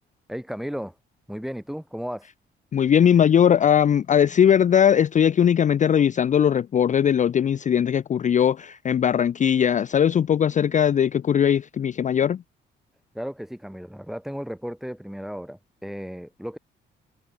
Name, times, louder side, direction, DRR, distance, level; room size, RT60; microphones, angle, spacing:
voice 1, 0.3-0.9 1.3-2.3 13.1-16.6, equal, ahead, 2.4 m, -34 dB
voice 2, 2.7-12.4, left 8 dB, 40° left, 0.5 m, -19 dB
cardioid pair, 90°, 20 cm